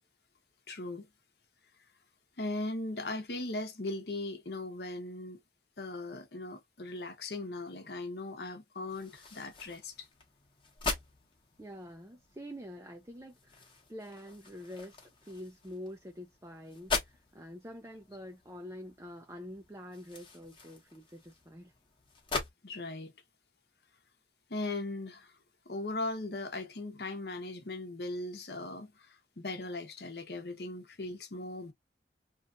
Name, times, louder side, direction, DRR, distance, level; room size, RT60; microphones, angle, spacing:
voice 1, 0.7-1.1 2.4-5.4 5.8-10.1 22.6-23.1 24.5-25.3 25.6-31.7, left 2 dB, 65° left, 0.9 m, -38 dB
sound 1, 8.9-22.5, left 4 dB, 30° left, 1.0 m, -42 dB
voice 2, 11.6-21.7, equal, 15° right, 0.5 m, -46 dB
3.1 x 2.4 x 2.5 m
head